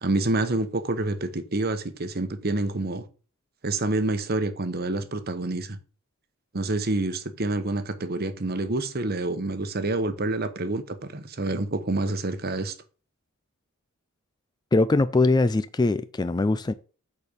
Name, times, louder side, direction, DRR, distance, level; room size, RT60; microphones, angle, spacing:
voice 1, 0.0-3.0 3.6-5.8 6.5-12.7, right 2 dB, 45° right, 1.0 m, -27 dB
voice 2, 14.7-16.7, left 2 dB, 20° left, 0.3 m, -22 dB
8.5 x 4.3 x 6.7 m
head